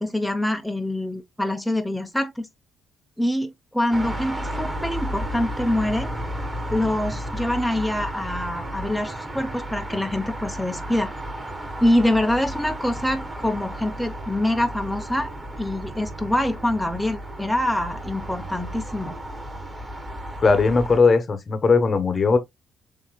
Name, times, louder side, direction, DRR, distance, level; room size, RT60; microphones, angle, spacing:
voice 1, 0.0-2.5 3.2-6.1 6.7-11.1 11.8-15.3 15.6-19.1, left 1 dB, ahead, 0.8 m, -25 dB
sound 1, 3.9-21.0, right 1 dB, 20° right, 1.7 m, -33 dB
voice 2, 20.4-22.4, left 4 dB, 40° left, 1.0 m, -18 dB
7.1 x 2.8 x 2.3 m
cardioid pair, 90°, 0 cm